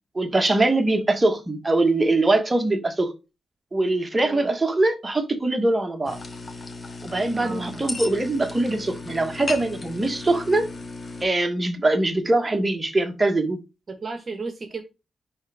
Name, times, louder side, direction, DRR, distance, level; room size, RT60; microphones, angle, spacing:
voice 1, 0.1-3.1 3.7-6.2 7.0-10.7 11.2-13.6, right 2 dB, 20° right, 1.3 m, -22 dB
voice 2, 4.2-4.5 7.3-7.8 13.9-14.8, right 3 dB, 40° right, 1.2 m, -34 dB
sound 1, 6.1-11.3, left 3 dB, 30° left, 1.4 m, -36 dB
10.0 x 3.5 x 3.4 m
cardioid pair, 95°, 0 cm